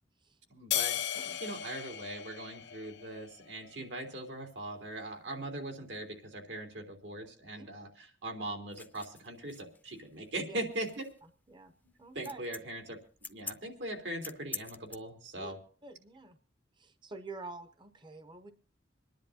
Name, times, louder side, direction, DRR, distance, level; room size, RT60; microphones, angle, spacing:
voice 1, 0.5-1.0 1.4-11.1 12.1-13.0 13.3-15.6, right 1 dB, 85° right, 3 dB, 3.3 m, -40 dB
sound 1, 0.7-3.3, left 11 dB, 80° left, 0.7 m, -35 dB
sound 2, 8.7-15.0, left 4 dB, 10° left, 0.6 m, -46 dB
voice 2, 12.0-12.4 15.4-15.5 15.8-16.4 16.8-18.5, right 3 dB, 25° right, 9 dB, 0.7 m, -47 dB
27.0 x 10.5 x 2.7 m, 0.42 s
head